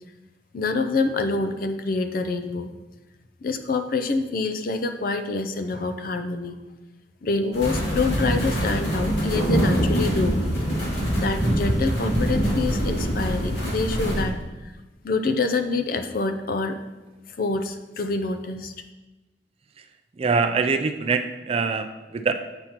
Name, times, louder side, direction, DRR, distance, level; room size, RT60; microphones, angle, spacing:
voice 1, 0.5-2.7 3.4-6.6 7.2-10.4 11.2-14.3 14.6-14.7 15.0-16.8 17.4-18.7, left 3 dB, 55° left, 8 dB, 0.5 m, -26 dB
sound 1, 7.5-14.2, equal, 80° left, 1.9 m, -24 dB
voice 2, 20.2-22.3, right 4 dB, 35° right, 8 dB, 0.4 m, -24 dB
7.9 x 5.7 x 2.9 m, 1.1 s
head